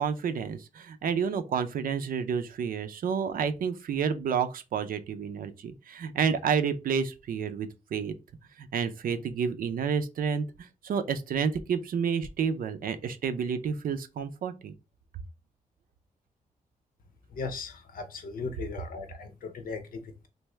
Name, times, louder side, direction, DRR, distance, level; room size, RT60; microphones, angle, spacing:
voice 1, 0.0-8.1 8.6-14.7, right 6 dB, 80° right, 0.5 m, -30 dB
voice 2, 17.3-20.3, left 4 dB, 85° left, 0.7 m, -38 dB
3.4 x 2.6 x 3.2 m
wide cardioid pair, 160°, 14 cm